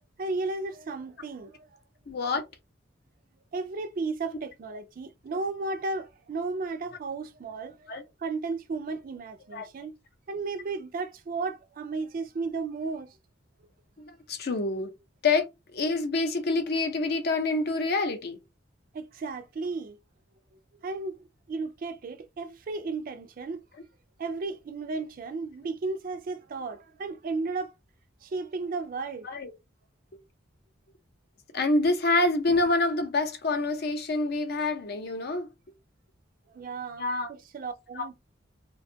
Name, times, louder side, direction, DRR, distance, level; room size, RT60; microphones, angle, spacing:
voice 1, 0.2-1.7 3.5-7.9 8.2-9.9 10.3-13.2 18.9-20.0 20.8-23.6 24.2-27.7 28.2-29.3 36.5-38.1, right 3 dB, 45° right, 0.3 m, -34 dB
voice 2, 2.1-2.4 7.9-8.0 9.5-9.7 14.3-14.9 15.2-18.4 29.2-29.5 31.5-35.5 37.0-37.3 38.0-38.1, left 3 dB, 55° left, 0.5 m, -27 dB
2.5 x 2.2 x 2.7 m
head